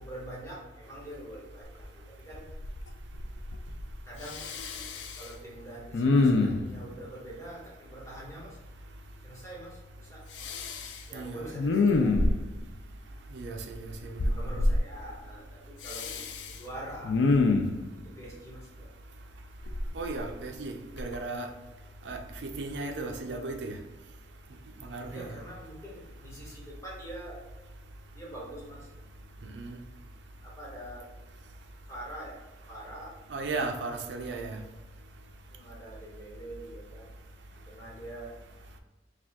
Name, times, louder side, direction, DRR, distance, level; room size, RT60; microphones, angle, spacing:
voice 1, 0.0-2.4 4.0-4.5 5.1-8.6 9.2-10.3 11.1-12.4 13.0-17.2 18.0-18.9 25.0-27.4 28.1-28.9 30.4-31.1 31.9-32.4 32.7-33.2 35.4-37.1 37.7-38.4, right 1 dB, 15° left, -5 dB, 1.3 m, -45 dB
Respiratory sounds, 1.8-1.9 2.3-2.9 3.1-3.9 4.2-5.3 5.9-6.8 10.4-11.0 11.5-12.6 14.2-14.8 15.8-16.5 17.0-17.8 19.6-20.6 21.0-21.2, left 3 dB, 90° left, 0.4 m, -26 dB
voice 2, 11.1-11.5 13.3-14.5 19.9-21.5 22.1-23.8 24.8-25.3 29.5-29.8 33.3-34.6, right 3 dB, 80° right, 4 dB, 0.5 m, -36 dB
4.7 x 2.3 x 3.5 m, 1.2 s
head